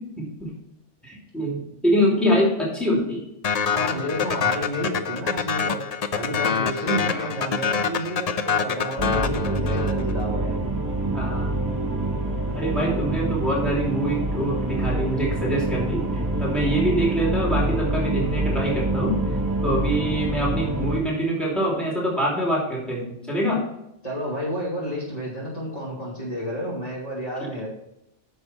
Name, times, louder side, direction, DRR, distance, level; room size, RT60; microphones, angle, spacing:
voice 1, 0.2-0.5 1.0-3.2 6.8-7.2 9.7-9.8 11.1-11.6 12.5-16.1 16.4-19.2 19.6-23.6, equal, ahead, -4 dB, 3.1 m, -25 dB
sound 1, 3.4-10.1, left 6 dB, 50° left, 0.5 m, -25 dB
voice 2, 3.6-5.8 6.1-10.6 24.0-27.7, equal, 30° left, -6 dB, 2.9 m, -30 dB
sound 2, 9.0-21.0, right 2 dB, 35° right, 2.0 m, -26 dB
9.8 x 6.8 x 4.3 m, 0.83 s
omnidirectional pair, 1.3 m